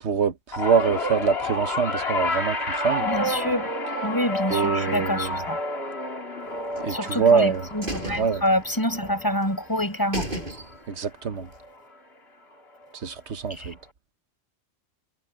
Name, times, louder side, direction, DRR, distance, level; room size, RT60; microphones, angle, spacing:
voice 1, 0.0-3.1 4.5-5.4 6.8-7.7 8.2-8.4 10.9-11.5 13.0-13.8, right 6 dB, 90° right, 1.4 m, -24 dB
sound 1, 0.5-11.0 11.3-11.7 12.8-12.9, left 1 dB, 70° left, 2.5 m, -30 dB
voice 2, 3.0-3.7 4.0-5.6 6.9-10.4 13.5-13.7, left 1 dB, 20° left, 6.2 m, -27 dB
sound 2, 6.7-7.4 7.8-9.1 9.4-9.5 9.8-9.9 10.1-11.0 11.4-11.5, right 1 dB, 50° right, 7.8 m, -34 dB
omnidirectional pair, 1.1 m